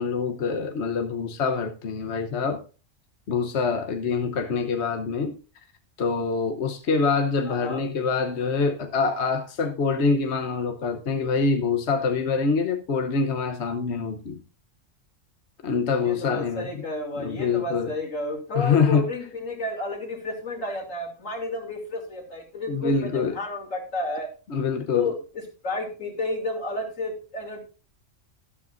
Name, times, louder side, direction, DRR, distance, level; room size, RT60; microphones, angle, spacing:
voice 1, 0.0-2.6 3.3-5.4 6.0-14.4 15.6-16.8 17.2-17.9 18.5-19.0 22.7-23.4 24.5-25.1, left 5 dB, 60° left, 1.2 m, -25 dB
voice 2, 7.5-7.8 16.0-24.3 24.9-27.6, left 2 dB, 85° left, 3.1 m, -31 dB
12.5 x 12.5 x 2.6 m
omnidirectional pair, 1.3 m